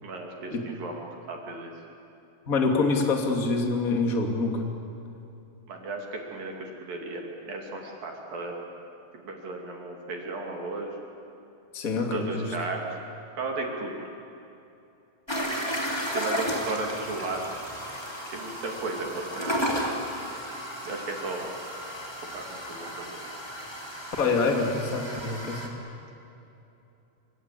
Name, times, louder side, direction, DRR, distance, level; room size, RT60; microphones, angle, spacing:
voice 1, 0.0-1.7 5.7-8.5 9.1-10.9 12.1-12.9 13.4-14.1 16.1-17.5 18.3-19.6 20.8-21.5 22.3-22.4 22.7-23.2, right 3 dB, 50° right, 0 dB, 3.8 m, -35 dB
voice 2, 2.5-4.6 11.7-12.5 24.2-25.7, left 3 dB, 30° left, 2 dB, 1.6 m, -26 dB
sound 1, 15.3-25.7, equal, 10° left, 1.9 m, -33 dB
27.0 x 25.5 x 8.5 m, 2.8 s
omnidirectional pair, 6.0 m